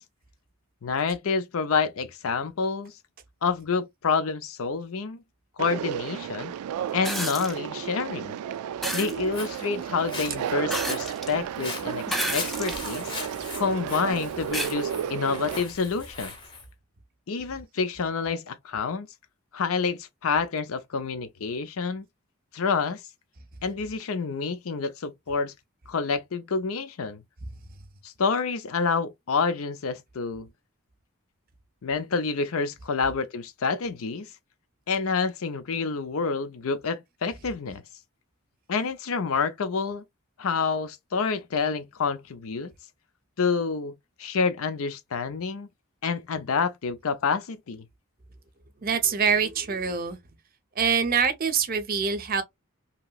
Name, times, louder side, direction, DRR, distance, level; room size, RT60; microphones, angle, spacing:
voice 1, 0.8-2.9 3.4-5.2 5.6-6.5 6.9-8.4 8.9-13.1 13.6-16.3 17.3-19.1 19.5-22.0 22.5-23.0 23.6-25.5 25.9-27.2 28.0-30.5 31.8-34.3 34.9-37.8 38.7-40.0 40.4-42.7 43.4-43.9 44.2-45.7 46.0-47.8, left 5 dB, 70° left, 0.5 m, -28 dB
Conversation, 5.6-15.6, right 9 dB, 85° right, 0.3 m, -33 dB
sound 1, 7.0-7.5 8.8-9.1 10.7-11.3 12.1-12.8 13.5-13.6 14.5-14.7 16.2-16.3, equal, ahead, 0.4 m, -30 dB
Walk footsteps, 9.0-16.7, left 3 dB, 20° left, 0.8 m, -40 dB
voice 2, 48.8-50.2 50.8-52.4, right 6 dB, 40° right, 0.6 m, -24 dB
2.9 x 2.8 x 2.2 m
head